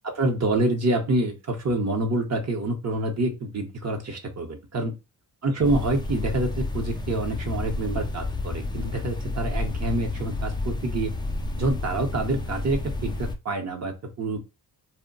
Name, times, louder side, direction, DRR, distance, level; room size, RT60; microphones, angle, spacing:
voice 1, 0.0-4.9 5.4-11.1 11.6-14.4, right 2 dB, 40° right, 4 dB, 0.8 m, -27 dB
sound 1, 5.6-13.4, left 2 dB, 10° left, 0.4 m, -30 dB
2.2 x 2.1 x 3.8 m, 0.27 s
cardioid pair, 80°, 42 cm